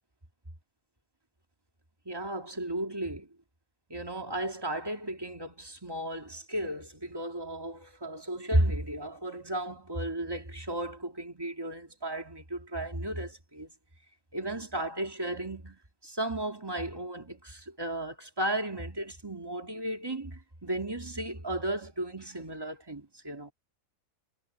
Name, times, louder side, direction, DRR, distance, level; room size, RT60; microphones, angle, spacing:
voice 1, 2.1-3.3 3.9-13.7 14.3-23.5, right 1 dB, 15° right, 2.1 m, -34 dB
omnidirectional pair, 1.6 m